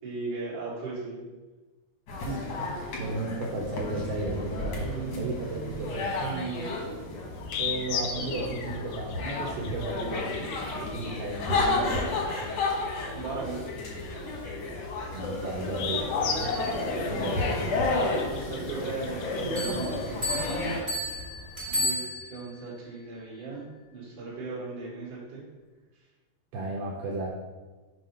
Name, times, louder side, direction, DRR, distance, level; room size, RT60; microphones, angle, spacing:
voice 1, 0.0-1.3 4.7-5.3 6.2-6.7 13.1-13.6 18.2-20.2 21.7-22.0 22.3-23.7 23.9-25.4, right 4 dB, 55° right, -7 dB, 3.5 m, -37 dB
sound 1, 2.1-20.8, left 2 dB, 65° left, 1.6 m, -32 dB
voice 2, 2.1-4.9 5.2-6.2 7.6-10.3 10.7-11.8 15.1-16.6 17.1-17.6 21.6-22.0 26.5-27.3, right 2 dB, 80° right, -3 dB, 2.7 m, -34 dB
sound 2, 7.3-21.7, left 6 dB, 80° left, 2.3 m, -39 dB
sound 3, 19.5-22.6, left 1 dB, 25° right, 1.5 m, -32 dB
7.4 x 2.7 x 5.6 m, 1.3 s
omnidirectional pair, 4.5 m